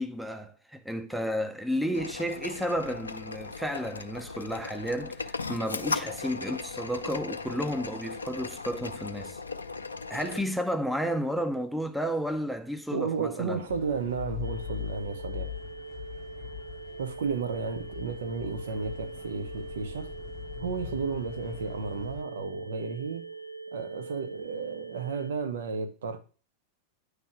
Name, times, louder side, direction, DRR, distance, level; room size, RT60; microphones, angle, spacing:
voice 1, 0.0-9.4 10.1-13.6, equal, ahead, 0.7 m, -32 dB
sound 1, 1.9-10.4, left 4 dB, 75° left, 0.5 m, -37 dB
voice 2, 12.9-15.6 17.0-20.1 20.6-23.3 23.7-26.2, right 5 dB, 65° right, 1.0 m, -33 dB
sound 2, 13.7-22.2, left 10 dB, 40° left, 0.7 m, -41 dB
sound 3, 14.4-25.3, right 4 dB, 90° right, 0.4 m, -43 dB
9.8 x 3.4 x 6.0 m
figure-of-eight pair, 90°, 0 cm